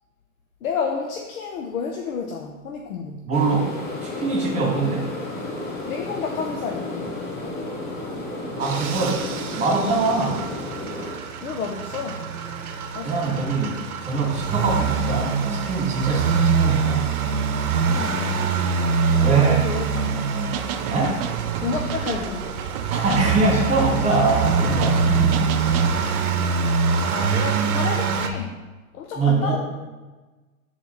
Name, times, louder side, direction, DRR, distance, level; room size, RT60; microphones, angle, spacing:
voice 1, 0.6-3.2 5.9-7.2 11.4-12.3 12.9-13.5 17.8-18.4 19.1-20.3 21.6-22.5 26.9-28.6 28.9-29.6, left 5 dB, 75° left, 3 dB, 0.8 m, -31 dB
sound 1, 3.3-11.1, left 2 dB, 20° left, 1.0 m, -32 dB
voice 2, 3.3-3.7 4.0-5.1 8.6-9.3 9.6-10.4 13.0-17.2 19.2-19.7 20.9-21.2 22.9-25.9 29.1-29.6, right 3 dB, 15° right, -1 dB, 1.6 m, -23 dB
sound 2, 8.6-28.3, right 5 dB, 85° right, 0.8 m, -24 dB
sound 3, 20.5-26.0, right 8 dB, 45° right, 0.5 m, -31 dB
8.8 x 4.0 x 3.1 m, 1.2 s
hypercardioid pair, 125°, 42 cm